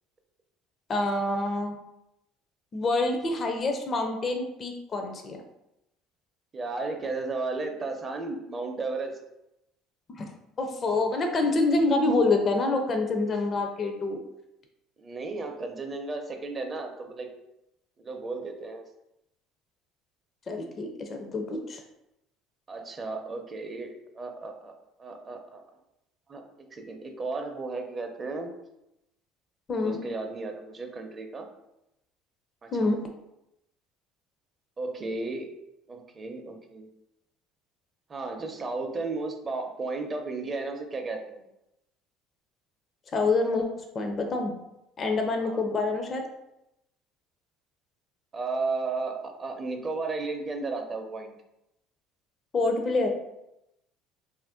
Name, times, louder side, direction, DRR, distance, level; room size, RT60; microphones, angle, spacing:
voice 1, 0.9-1.7 2.7-5.4 10.1-10.3 10.6-14.2 20.5-21.8 29.7-30.0 32.7-33.0 43.1-44.5 45.0-46.3 52.5-53.1, left 2 dB, 35° left, 4 dB, 0.4 m, -26 dB
voice 2, 6.5-9.2 15.0-17.3 18.0-18.8 22.7-24.7 25.0-25.6 26.3-28.6 29.7-31.5 32.6-32.7 34.8-35.5 35.9-36.9 38.1-41.4 45.4-45.6 48.3-51.3, right 3 dB, 35° right, 4 dB, 0.5 m, -34 dB
2.5 x 2.1 x 3.6 m, 0.87 s
supercardioid pair, 80°, 0 cm